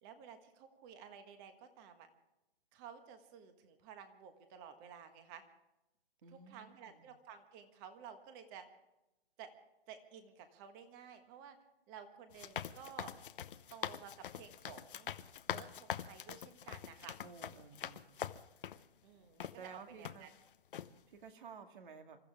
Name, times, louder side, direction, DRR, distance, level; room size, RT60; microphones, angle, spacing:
voice 1, 0.0-2.1 2.7-5.4 6.3-8.6 9.4-9.5 9.9-11.6 11.9-13.1 13.7-15.1 15.5-17.2 19.0-20.3, right 7 dB, 20° right, 8 dB, 1.5 m, -53 dB
voice 2, 6.2-7.0 17.2-18.2 19.5-20.3 21.1-22.2, right 5 dB, 50° right, 6 dB, 2.2 m, -53 dB
sound 1, 12.3-18.8 19.4-19.5 20.0-20.4 20.7-20.9, left 9 dB, 55° left, 0.9 m, -44 dB
27.0 x 14.0 x 3.5 m, 0.94 s
hypercardioid pair, 160°, 32 cm